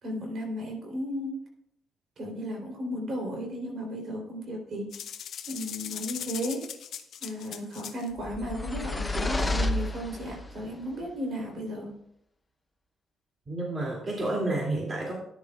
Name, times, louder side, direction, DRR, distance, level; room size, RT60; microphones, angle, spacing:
voice 1, 0.0-1.4 2.2-4.9 5.5-6.7 7.2-11.9, equal, 55° right, 3.5 m, -34 dB
sound 1, 4.9-8.1, left 9 dB, 70° left, 0.7 m, -39 dB
sound 2, 8.2-10.6, left 2 dB, 15° left, 0.8 m, -30 dB
voice 2, 13.5-15.1, right 2 dB, 35° right, 2.6 m, -30 dB
13.5 x 10.0 x 2.4 m
cardioid pair, 90°, 0 cm